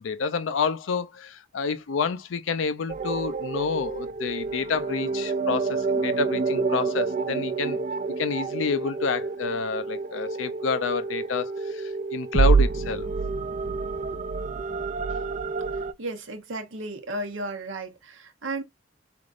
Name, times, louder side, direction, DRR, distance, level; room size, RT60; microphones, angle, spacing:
voice 1, 0.0-7.8 8.2-13.1, left 5 dB, 80° left, 0.5 m, -29 dB
sound 1, 2.9-15.9, right 4 dB, 40° right, 0.3 m, -28 dB
voice 2, 15.7-18.6, right 2 dB, 90° right, 0.9 m, -34 dB
3.8 x 3.5 x 2.4 m
head